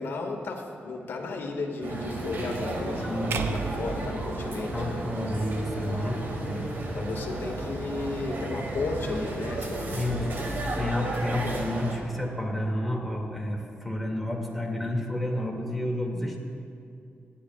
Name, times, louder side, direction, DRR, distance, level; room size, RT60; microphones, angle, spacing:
voice 1, 0.0-5.0 6.9-10.6 11.4-11.6, left 3 dB, 75° left, 1 dB, 1.7 m, -34 dB
sound 1, 1.8-12.0, right 2 dB, 60° right, 2.0 m, -33 dB
voice 2, 2.9-3.7 4.5-7.1 9.9-10.4 10.8-16.4, left 1 dB, ahead, -1 dB, 2.2 m, -31 dB
sound 2, 3.3-5.6, right 6 dB, 80° right, 0.6 m, -35 dB
23.0 x 10.0 x 2.4 m, 2.5 s
cardioid pair, 80°, 4 cm